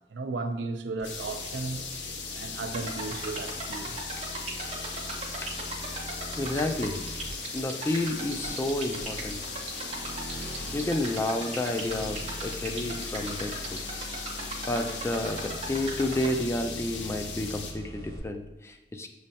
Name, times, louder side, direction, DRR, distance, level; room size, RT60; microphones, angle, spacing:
voice 1, 0.1-1.8 2.3-4.0, right 3 dB, 90° right, 0.4 m, -34 dB
sound 1, 1.0-17.7, left 5 dB, 80° left, 0.6 m, -39 dB
sound 2, 1.0-18.2, equal, 65° left, 1.1 m, -43 dB
sound 3, 2.7-16.3, right 3 dB, 40° right, 0.7 m, -40 dB
voice 2, 6.4-7.0 7.5-9.4 10.7-13.8 14.7-19.1, left 1 dB, 15° left, 0.3 m, -30 dB
6.1 x 3.2 x 2.8 m
head